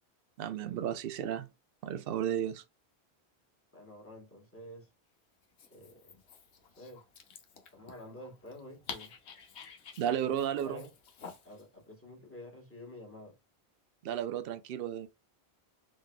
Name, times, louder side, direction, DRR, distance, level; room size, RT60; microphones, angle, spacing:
voice 1, 0.4-1.5 1.8-2.6 10.0-10.8 14.0-15.1, right 10 dB, 65° right, 0.7 m, -33 dB
voice 2, 3.7-4.9 5.7-6.2 6.8-7.0 7.7-9.1 10.1-10.9 11.4-13.3, left 1 dB, 10° left, 1.4 m, -49 dB
Dog, 5.4-11.7, left 5 dB, 80° left, 1.1 m, -50 dB
3.7 x 3.1 x 2.2 m
omnidirectional pair, 1.1 m